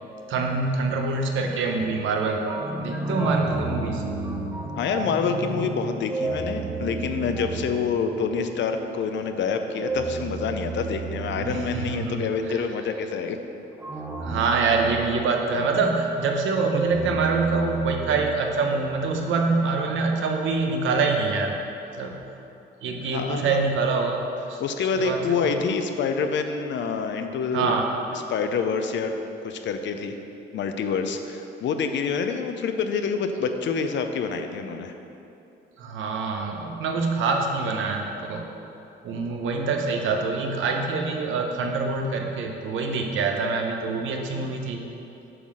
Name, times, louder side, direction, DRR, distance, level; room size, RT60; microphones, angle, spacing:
voice 1, 0.3-4.0 11.4-12.6 14.2-21.5 22.0-22.1 22.8-24.2 24.5-24.6 25.0-25.6 27.5-27.9 35.8-38.4 39.0-44.8, right 4 dB, 80° right, 2 dB, 0.9 m, -25 dB
sound 1, 1.8-8.8 9.7-12.7 13.8-15.9 16.7-19.1, right 3 dB, 10° right, 0.8 m, -32 dB
voice 2, 4.8-13.4 23.1-23.6 24.6-27.8 28.1-29.1 29.4-30.1 30.5-35.0, left 5 dB, 65° left, 7 dB, 0.6 m, -27 dB
7.9 x 3.9 x 6.2 m, 2.9 s
cardioid pair, 90°, 20 cm